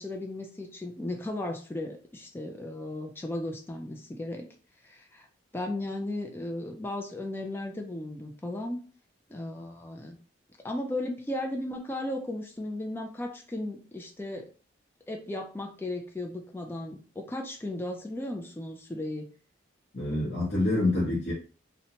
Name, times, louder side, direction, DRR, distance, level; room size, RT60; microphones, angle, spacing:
voice 1, 0.0-4.5 4.8-5.3 5.5-8.8 9.3-10.2 10.6-14.5 15.1-19.3, left 1 dB, 10° left, 0.3 m, -35 dB
voice 2, 19.9-21.3, left 2 dB, 50° left, 0.9 m, -26 dB
2.8 x 2.1 x 2.8 m
head